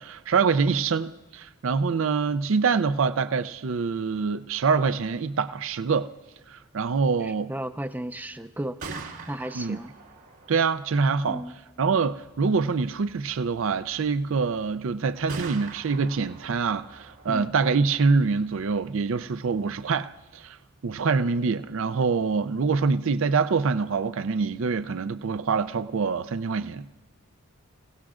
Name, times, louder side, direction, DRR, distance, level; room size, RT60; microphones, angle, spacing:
voice 1, 0.0-6.1 6.5-7.5 9.5-9.8 10.5-11.4 11.8-20.6 20.8-26.8, right 5 dB, 65° right, 0.4 m, -25 dB
voice 2, 7.2-8.8 9.3-9.9 11.3-11.6 17.3-17.5, right 1 dB, 10° right, 0.4 m, -34 dB
Gunshot gunfire, 8.6-22.4, right 4 dB, 85° right, 2.1 m, -46 dB
28.5 x 17.5 x 2.5 m
head